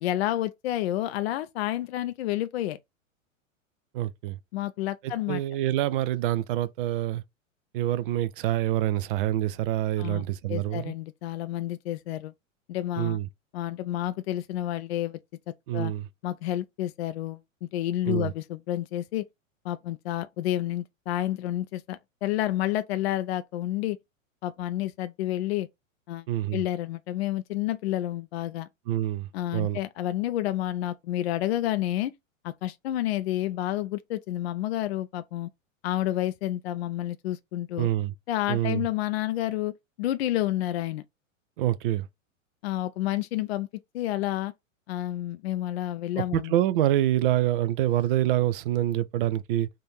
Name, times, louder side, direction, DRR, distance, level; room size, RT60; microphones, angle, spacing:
voice 1, 0.0-2.8 4.5-5.4 10.0-12.3 12.7-13.2 13.5-15.2 15.7-15.9 16.2-19.2 19.6-24.0 24.4-25.7 26.1-26.3 26.5-28.7 29.3-32.1 32.4-35.5 35.8-37.9 38.3-39.7 40.0-41.0 42.6-43.7 43.9-44.5 44.9-46.5, left 13 dB, 50° left, 0.5 m, -30 dB
voice 2, 3.9-4.4 5.0-7.2 7.7-10.9 13.0-13.3 15.7-16.1 18.1-18.3 26.3-26.6 28.9-29.8 37.8-38.1 38.5-38.8 41.6-42.1 46.2-49.7, right 13 dB, 45° right, 0.4 m, -26 dB
3.8 x 2.6 x 4.3 m
figure-of-eight pair, 100°, 40 cm